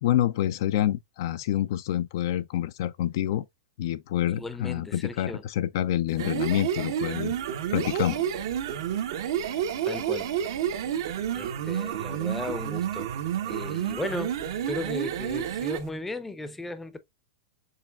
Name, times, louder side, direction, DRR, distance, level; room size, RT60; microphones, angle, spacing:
voice 1, 0.0-3.4 3.8-7.3 7.7-8.3, left 12 dB, 60° left, 0.4 m, -27 dB
voice 2, 4.3-5.4 9.8-10.3 11.3-13.1 13.4-14.3 14.7-17.0, left 2 dB, 10° left, 0.6 m, -36 dB
sound 1, 6.1-15.9, right 9 dB, 65° right, 0.8 m, -30 dB
6.5 x 3.2 x 2.3 m
hypercardioid pair, 135°, 2 cm